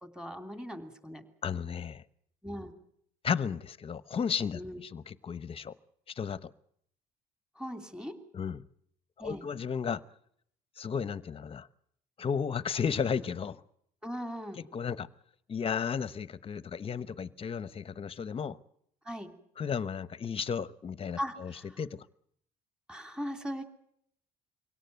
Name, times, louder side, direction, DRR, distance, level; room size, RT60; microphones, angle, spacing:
voice 1, 0.0-1.2 2.4-2.7 4.5-4.8 7.6-8.1 9.2-9.4 14.0-14.6 19.0-19.3 21.2-21.8 22.9-23.6, equal, 5° right, 6 dB, 3.1 m, -39 dB
voice 2, 1.4-2.0 3.2-5.7 6.2-6.5 8.3-8.6 9.2-10.0 10.8-11.7 12.2-13.6 14.6-15.1 15.5-18.6 19.6-22.0, left 7 dB, 35° left, 16 dB, 1.0 m, -34 dB
24.0 x 17.5 x 9.4 m, 0.70 s
cardioid pair, 110°, 17 cm